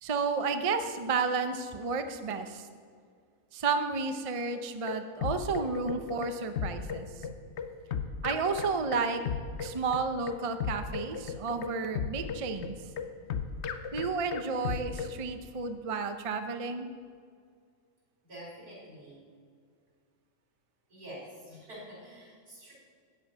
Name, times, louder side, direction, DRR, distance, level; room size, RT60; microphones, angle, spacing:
voice 1, 0.0-2.7 3.5-7.1 8.2-9.2 9.6-12.7 13.9-16.9, right 4 dB, 35° right, 8 dB, 0.5 m, -32 dB
sound 1, 4.5-15.2, left 6 dB, 60° left, 0.9 m, -35 dB
voice 2, 18.2-19.2 20.9-22.7, equal, 90° right, -5 dB, 4.7 m, -47 dB
13.0 x 5.6 x 8.9 m, 2.1 s
omnidirectional pair, 1.6 m